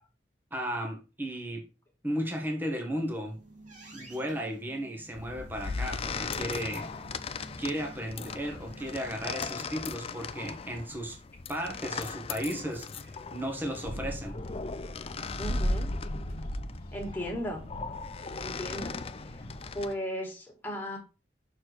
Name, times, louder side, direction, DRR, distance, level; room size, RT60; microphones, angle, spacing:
voice 1, 0.5-1.6 2.0-3.4 3.9-6.9 7.6-11.2 11.5-14.4, equal, 10° right, 1.4 m, -35 dB
sound 1, 2.6-9.1, right 2 dB, 45° right, 2.3 m, -52 dB
sound 2, 5.1-19.9, left 5 dB, 35° left, 0.4 m, -39 dB
sound 3, 13.8-19.8, equal, 55° left, 1.4 m, -36 dB
voice 2, 15.4-15.9 16.9-17.7 18.4-19.0 19.7-21.0, equal, 10° left, 2.3 m, -36 dB
6.4 x 4.5 x 4.5 m
head